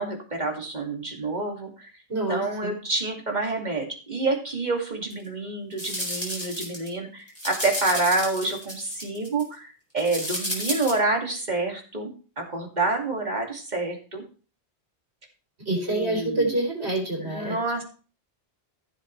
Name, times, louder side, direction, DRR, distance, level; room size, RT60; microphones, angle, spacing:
voice 1, 0.0-1.9 2.3-14.2 15.7-16.6 17.2-17.8, right 3 dB, 40° right, 2 dB, 2.5 m, -28 dB
voice 2, 2.1-2.8 15.7-17.6, right 2 dB, 75° right, 0 dB, 4.1 m, -27 dB
sound 1, 5.1-5.2 5.7-6.9 7.3-9.4 10.0-10.9, equal, 10° left, 4.2 m, -32 dB
15.5 x 7.5 x 3.2 m, 0.37 s
omnidirectional pair, 1.1 m